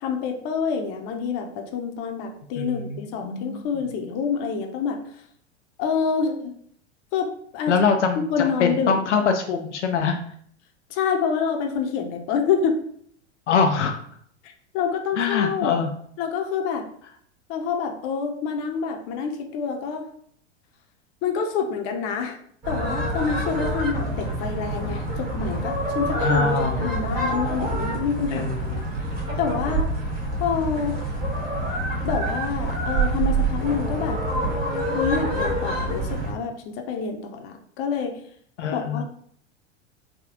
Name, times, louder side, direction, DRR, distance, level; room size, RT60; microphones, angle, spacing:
voice 1, 0.0-5.0 5.8-6.5 7.1-7.3 7.5-7.7 8.3-8.9 10.9-12.8 14.4-15.8 16.2-16.8 17.5-20.1 21.2-22.4 22.7-26.5 26.8-28.7 29.4-29.8 30.4-31.0 32.0-34.2 34.9-38.2 38.7-39.0, left 6 dB, 40° left, 4 dB, 0.7 m, -27 dB
voice 2, 2.6-3.7 7.7-10.2 13.5-14.0 15.2-15.9 26.2-26.9 28.3-28.8 38.6-39.0, left 5 dB, 75° left, 4 dB, 0.5 m, -24 dB
sound 1, 22.6-36.3, right 1 dB, 25° right, 1.3 m, -26 dB
3.5 x 2.2 x 3.7 m, 0.63 s
figure-of-eight pair, 95°, 36 cm